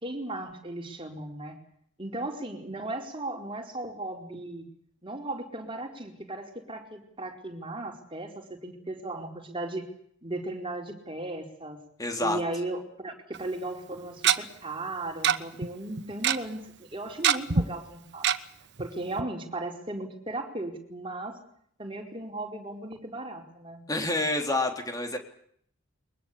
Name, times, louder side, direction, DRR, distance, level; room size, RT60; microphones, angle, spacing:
voice 1, 0.0-1.6 2.0-4.7 5.0-9.9 10.2-11.8 12.2-18.3 18.8-21.4 21.8-23.8, right 2 dB, 25° right, 2 dB, 4.5 m, -36 dB
voice 2, 12.0-12.4 23.9-25.2, left 2 dB, 20° left, 4 dB, 3.5 m, -28 dB
Tick-tock, 13.3-13.4 14.2-14.4 15.2-15.4 15.6-15.7 16.0-16.4 17.2-17.6 18.2-18.4 18.8-18.9 19.2-19.3, right 7 dB, 55° right, 1.1 m, -22 dB
23.0 x 21.5 x 8.6 m, 0.66 s
head